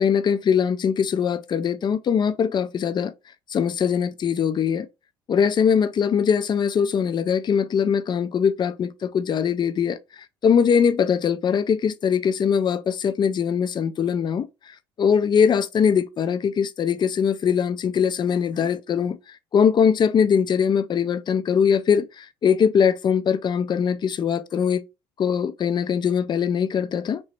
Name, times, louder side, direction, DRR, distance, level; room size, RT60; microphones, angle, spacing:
voice 1, 0.0-3.1 3.5-4.9 5.3-10.0 10.4-19.2 19.5-24.8 25.2-27.2, left 7 dB, 35° left, 0.5 m, -21 dB
3.1 x 2.8 x 2.9 m
hypercardioid pair, 70°, 13 cm